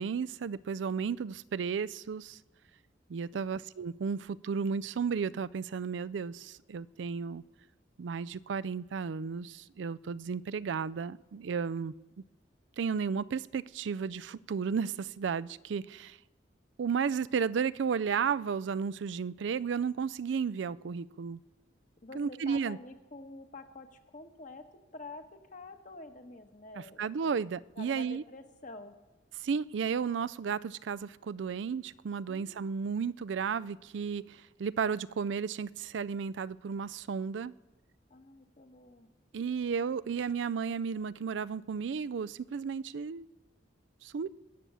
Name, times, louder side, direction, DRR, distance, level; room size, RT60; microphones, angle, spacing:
voice 1, 0.0-2.4 3.1-7.4 8.0-11.9 12.8-16.2 16.8-21.4 22.1-22.8 26.7-28.2 29.4-37.5 39.3-43.3 44.0-44.3, right 6 dB, 80° right, 0.4 m, -33 dB
voice 2, 22.0-27.4 27.7-28.9 32.3-32.7 38.1-39.1, left 2 dB, 45° left, 1.3 m, -48 dB
21.5 x 8.6 x 6.9 m
head